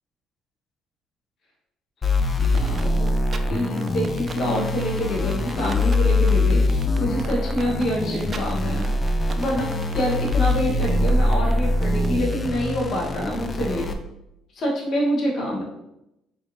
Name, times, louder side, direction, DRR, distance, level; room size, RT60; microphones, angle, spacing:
sound 1, 2.0-13.9, left 2 dB, 30° left, 0.4 m, -23 dB
sound 2, 2.4-12.4, right 5 dB, 40° right, 0.3 m, -40 dB
voice 1, 2.5-3.1 3.5-8.9 9.3-13.9 14.5-15.6, equal, 50° left, -2 dB, 1.0 m, -26 dB
4.2 x 3.0 x 2.6 m, 0.85 s
cardioid pair, 95°, 0 cm